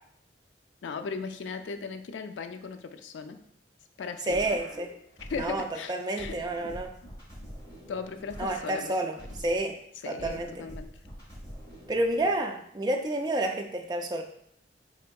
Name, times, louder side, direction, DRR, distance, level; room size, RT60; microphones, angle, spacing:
voice 1, 0.8-3.4 4.0-4.4 5.2-6.4 6.6-6.8 7.8-9.3 10.0-10.9, left 5 dB, 75° left, 8 dB, 0.3 m, -37 dB
sound 1, 4.3-5.7 6.2-9.7 10.2-12.3, equal, 20° left, 1.4 m, -45 dB
voice 2, 4.3-4.9 5.4-6.9 8.4-9.7 10.1-10.6 11.9-14.2, right 1 dB, 20° right, 3 dB, 0.3 m, -29 dB
4.3 x 3.6 x 2.2 m, 0.69 s
head